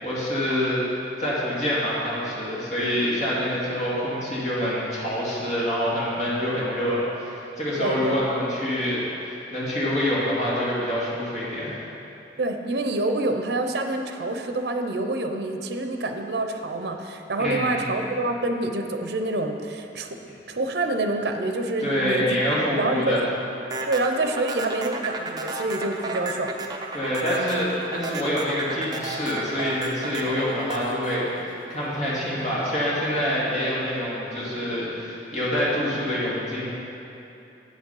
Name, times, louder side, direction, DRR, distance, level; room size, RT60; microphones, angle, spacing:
voice 1, 0.0-0.8 1.2-11.8 17.4-17.9 21.8-23.3 26.9-36.7, equal, 40° left, -7 dB, 2.3 m, -26 dB
voice 2, 7.8-8.2 12.4-20.2 20.5-22.4 22.6-23.2 23.9-26.5, right 2 dB, 65° right, 5 dB, 0.6 m, -27 dB
sound 1, 23.7-32.1, right 2 dB, 20° right, 0.6 m, -33 dB
8.6 x 6.2 x 5.6 m, 2.9 s
head